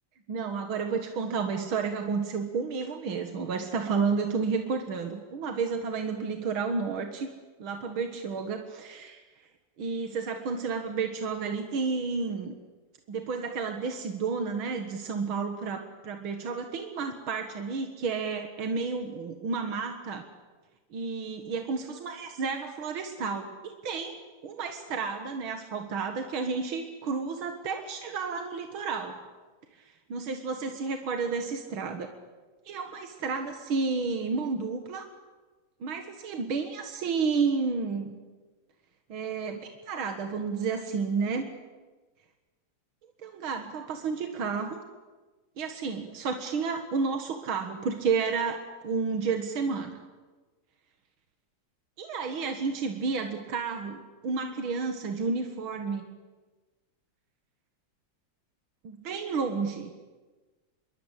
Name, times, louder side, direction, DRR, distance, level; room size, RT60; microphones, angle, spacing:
voice 1, 0.3-7.3 7.6-9.3 9.8-12.5 13.1-20.3 20.9-29.2 30.1-32.1 32.7-35.1 35.8-38.2 39.1-41.5 43.2-44.8 45.6-50.0 52.0-56.0 58.8-59.9, right 5 dB, 80° right, 5 dB, 2.5 m, -31 dB
27.0 x 22.5 x 8.4 m, 1.3 s
omnidirectional pair, 2.2 m